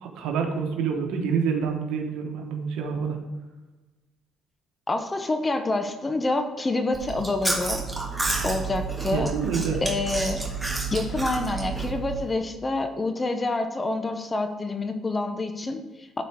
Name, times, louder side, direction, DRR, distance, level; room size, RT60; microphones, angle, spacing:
voice 1, 0.0-3.2 9.1-9.8, right 6 dB, 85° right, 2 dB, 1.4 m, -27 dB
voice 2, 4.9-7.8 8.4-9.3 9.8-10.4 10.9-16.2, left 2 dB, 20° left, 7 dB, 0.8 m, -27 dB
Chewing mastication, 6.9-12.3, right 4 dB, 5° right, 1.5 m, -30 dB
12.5 x 4.4 x 4.7 m, 1.1 s
cardioid pair, 135°, 0 cm